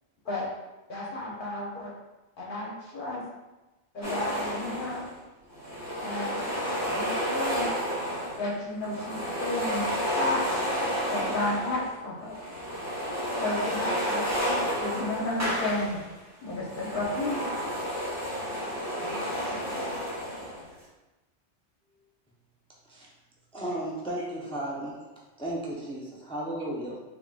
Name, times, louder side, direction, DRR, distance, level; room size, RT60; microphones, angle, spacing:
voice 1, 0.9-1.9 2.4-3.2 3.9-5.0 6.0-6.4 6.9-7.7 8.4-10.4 11.1-12.4 13.4-16.0 16.4-17.5, left 2 dB, 50° left, -3 dB, 0.9 m, -32 dB
sound 1, 4.0-5.1 5.5-8.5 8.8-11.9 12.2-16.1 16.4-20.7, equal, 15° right, 0.9 m, -31 dB
voice 2, 18.2-20.1 20.4-20.6 23.7-23.8 26.6-26.8, right 1 dB, 55° right, -1 dB, 0.6 m, -47 dB
voice 3, 23.5-25.0 25.4-27.1, right 1 dB, 10° left, -4 dB, 0.3 m, -34 dB
3.5 x 3.4 x 2.4 m, 1.1 s
omnidirectional pair, 1.2 m